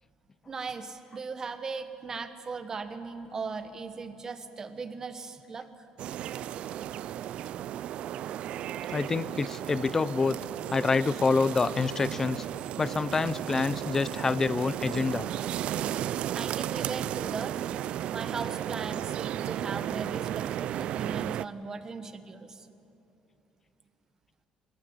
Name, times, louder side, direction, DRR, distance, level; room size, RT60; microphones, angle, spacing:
voice 1, 0.5-5.7 16.3-17.6 18.1-22.7, right 4 dB, 30° right, 10 dB, 1.3 m, -38 dB
sound 1, 6.0-21.5, right 11 dB, 60° right, 0.4 m, -34 dB
voice 2, 8.9-10.4 10.7-12.4 12.8-15.3, left 4 dB, 20° left, 16 dB, 0.4 m, -27 dB
22.5 x 16.0 x 9.5 m, 2.9 s
cardioid pair, 135°, 2 cm